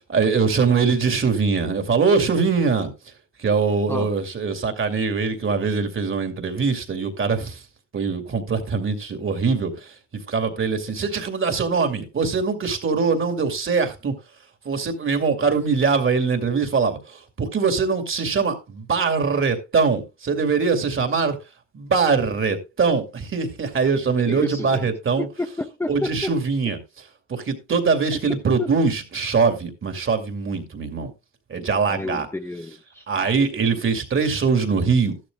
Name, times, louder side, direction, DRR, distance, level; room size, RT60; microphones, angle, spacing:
voice 1, 0.1-2.9 3.4-7.6 7.9-9.7 10.3-14.2 14.6-21.4 21.7-25.3 25.9-26.8 27.3-31.1 31.5-32.3 33.1-35.3, right 5 dB, 45° right, 2.5 m, -22 dB
voice 2, 24.3-24.8 25.2-26.3 28.1-28.2 28.6-28.7 31.9-33.0, left 2 dB, 10° left, 0.9 m, -30 dB
13.5 x 12.0 x 2.3 m
cardioid pair, 90°, 30 cm